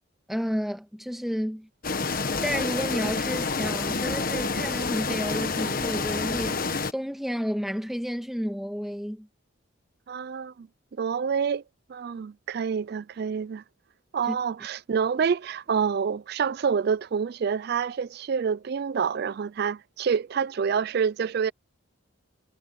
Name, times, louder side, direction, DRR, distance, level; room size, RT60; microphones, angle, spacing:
voice 1, 0.3-1.7 2.4-6.6 6.9-9.3 14.3-14.4, equal, ahead, 1.6 m, -31 dB
sound 1, 1.8-6.9, left 4 dB, 45° left, 1.3 m, -28 dB
voice 2, 10.1-10.7 11.0-11.6 11.9-13.6 14.1-21.5, right 6 dB, 50° right, 0.3 m, -27 dB
head